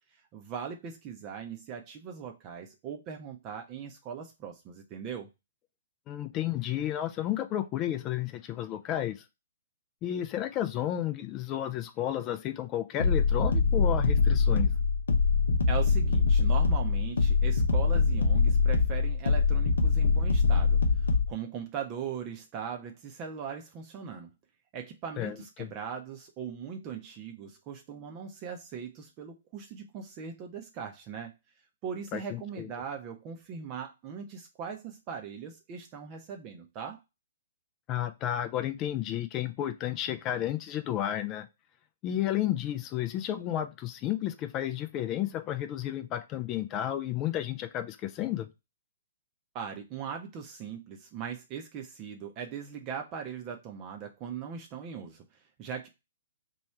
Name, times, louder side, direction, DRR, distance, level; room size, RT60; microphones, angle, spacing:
voice 1, 0.1-5.3 15.7-24.3 24.7-31.3 31.8-37.0 49.5-55.9, right 7 dB, 30° right, 3 dB, 0.5 m, -40 dB
voice 2, 6.1-9.2 10.0-14.7 25.2-25.7 32.1-32.7 37.9-41.5 42.0-48.5, left 12 dB, 30° left, 10 dB, 0.3 m, -32 dB
sound 1, 13.0-21.3, left 4 dB, 75° left, 0.6 m, -24 dB
3.0 x 2.3 x 4.3 m, 0.24 s
figure-of-eight pair, 120°, 0 cm